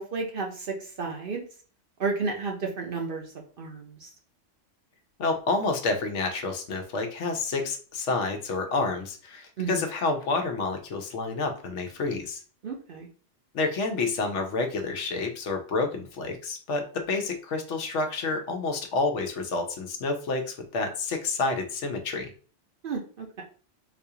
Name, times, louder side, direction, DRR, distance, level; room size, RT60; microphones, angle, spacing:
voice 1, 0.0-1.4 2.0-3.2 3.6-4.1 9.6-9.8 12.6-13.1 22.8-23.4, right 4 dB, 55° right, 1 dB, 0.8 m, -32 dB
voice 2, 5.2-12.4 13.5-22.3, left 3 dB, 70° left, 4 dB, 1.0 m, -29 dB
4.0 x 2.4 x 2.8 m, 0.39 s
omnidirectional pair, 1.3 m